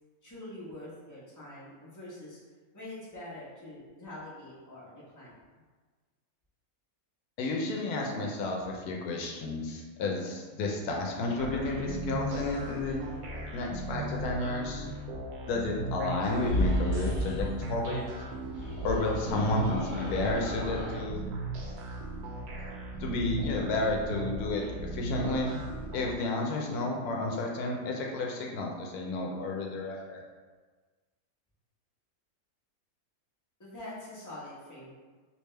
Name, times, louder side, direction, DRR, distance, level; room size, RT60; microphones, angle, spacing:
voice 1, 0.2-2.4 2.7-5.3 33.6-34.9, left 1 dB, 15° left, -9 dB, 1.0 m, -45 dB
voice 2, 7.4-13.0 13.5-14.9 15.5-18.1 18.8-21.2 23.0-25.6 25.9-30.2, left 2 dB, 80° left, 0 dB, 1.1 m, -31 dB
sound 1, 11.4-26.2, right 2 dB, 85° right, 1.1 m, -37 dB
sound 2, 16.3-17.6 18.4-21.0, equal, 50° left, 0.8 m, -33 dB
3.4 x 2.9 x 3.2 m, 1.4 s
omnidirectional pair, 1.6 m